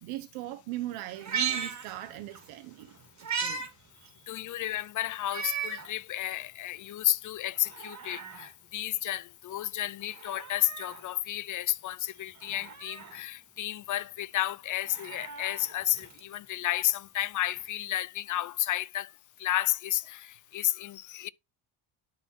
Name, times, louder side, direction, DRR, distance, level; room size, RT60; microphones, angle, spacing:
voice 1, 0.0-3.0 3.4-3.7 3.9-4.7 12.1-12.2, right 15 dB, 85° right, 0.9 m, -40 dB
Meow, 1.1-2.5 2.8-3.7 4.1-4.2 5.2-5.9 6.4-6.5 7.5-8.5 10.0-11.0 12.4-13.2 14.7-16.3 17.6-17.7, right 7 dB, 35° right, 2.0 m, -37 dB
voice 2, 4.3-19.1 19.4-21.3, left 13 dB, 40° left, 0.5 m, -32 dB
12.0 x 4.2 x 2.8 m
cardioid pair, 95°, 49 cm